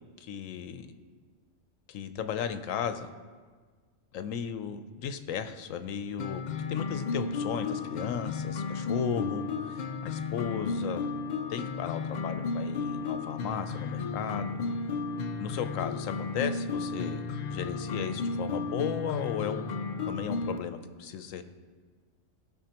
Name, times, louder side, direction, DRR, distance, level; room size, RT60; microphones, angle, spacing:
voice 1, 0.2-0.9 1.9-3.1 4.1-6.4 6.7-11.1 11.5-14.6 15.4-17.2 17.5-19.7 20.1-21.4, left 8 dB, 80° left, 10 dB, 1.0 m, -35 dB
sound 1, 6.2-20.6, left 4 dB, 65° left, 0.4 m, -33 dB
17.5 x 6.2 x 2.9 m, 1.5 s
omnidirectional pair, 1.3 m